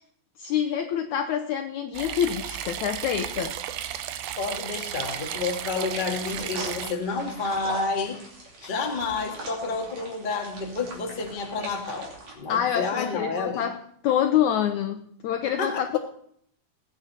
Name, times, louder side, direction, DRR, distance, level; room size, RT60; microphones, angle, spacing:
voice 1, 0.4-3.5 12.5-16.0, left 10 dB, 80° left, 7 dB, 1.7 m, -26 dB
sound 1, 1.9-6.9, right 11 dB, 85° right, 2.6 m, -34 dB
voice 2, 4.4-8.2 8.6-12.1 12.3-13.6 15.6-16.0, left 4 dB, 30° left, 1 dB, 0.9 m, -30 dB
sound 2, 4.8-12.3, right 2 dB, 50° right, 4.1 m, -40 dB
20.0 x 9.4 x 4.2 m, 0.66 s
omnidirectional pair, 4.2 m